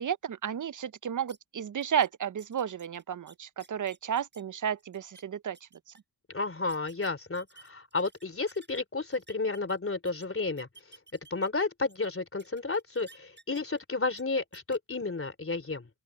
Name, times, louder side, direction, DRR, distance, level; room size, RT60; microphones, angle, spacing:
voice 1, 0.0-5.7, right 8 dB, 45° right, 0.6 m, -32 dB
sound 1, 1.3-1.4 1.8-2.1 2.4-4.4 4.8-5.2 5.5-6.0 6.7-8.8 9.1-10.3 10.6-12.1 12.4-13.8 14.1-14.2 14.5-14.8, right 3 dB, 25° right, 5.7 m, -56 dB
voice 2, 6.3-10.7 11.3-15.9, left 3 dB, 30° left, 3.2 m, -32 dB
open air
cardioid pair, 60°, 43 cm